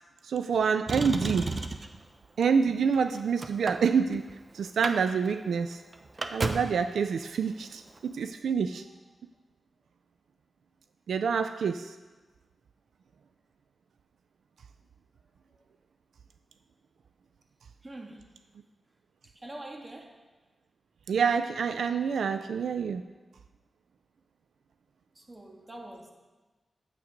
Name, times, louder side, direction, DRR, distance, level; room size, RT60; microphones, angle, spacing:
voice 1, 0.2-1.5 2.4-4.2 4.5-5.8 6.3-8.8 11.1-12.0 21.1-23.0, right 6 dB, 85° right, 10 dB, 0.3 m, -27 dB
Motor vehicle (road), 0.9-2.0 2.8-4.3 4.7-5.0 5.3-5.4 5.7-6.8 7.9-8.0, right 3 dB, 45° right, 0.7 m, -33 dB
voice 2, 17.8-18.3 19.3-20.2 25.1-26.1, right 1 dB, 30° right, 2 dB, 1.6 m, -44 dB
9.7 x 7.7 x 5.1 m, 1.2 s
cardioid pair, 65°, 0 cm